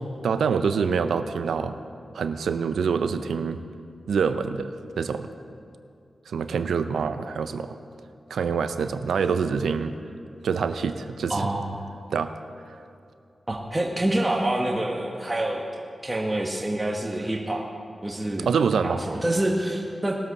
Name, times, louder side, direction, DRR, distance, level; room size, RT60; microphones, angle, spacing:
voice 1, 0.2-1.8 2.1-3.6 4.1-5.3 6.3-7.8 8.3-10.0 10.4-11.5 12.1-12.3 18.4-19.0, right 6 dB, 85° right, 10 dB, 0.5 m, -25 dB
voice 2, 11.3-11.7 13.5-15.6 16.0-17.6 18.0-18.5 18.8-20.1, right 1 dB, 25° right, -1 dB, 1.4 m, -26 dB
20.0 x 7.8 x 4.2 m, 2.5 s
cardioid pair, 40°, 0 cm